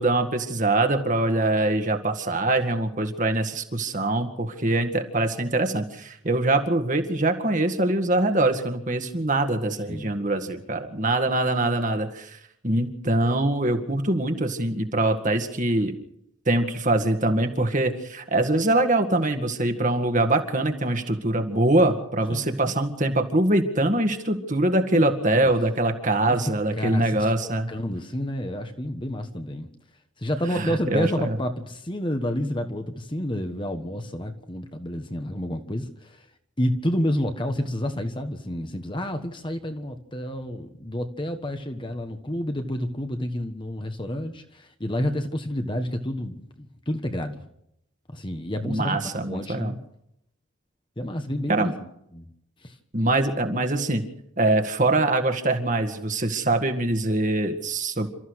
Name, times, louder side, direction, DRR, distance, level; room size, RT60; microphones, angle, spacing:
voice 1, 0.0-12.4 12.6-15.9 16.5-27.7 30.5-31.4 48.6-49.7 51.5-51.7 52.9-54.0 54.4-58.1, right 2 dB, 35° right, 6 dB, 2.0 m, -23 dB
voice 2, 22.3-22.7 24.9-25.1 25.4-25.5 26.2-26.4 26.8-29.7 30.2-36.2 36.6-47.5 48.1-49.0 49.2-49.8 51.0-51.7 52.1-52.3 52.6-52.7, equal, 20° left, 6 dB, 1.4 m, -29 dB
29.0 x 14.0 x 6.5 m, 0.77 s
head